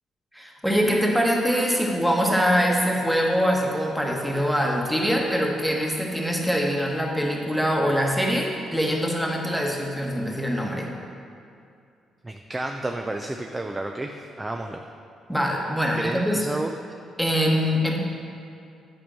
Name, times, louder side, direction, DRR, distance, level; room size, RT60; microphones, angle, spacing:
voice 1, 0.3-10.9 15.3-16.4 17.2-18.0, equal, ahead, -1 dB, 1.3 m, -23 dB
voice 2, 12.2-14.8 15.9-16.7, right 2 dB, 15° right, 4 dB, 0.4 m, -31 dB
8.9 x 5.3 x 6.2 m, 2.4 s
cardioid pair, 115°, 0 cm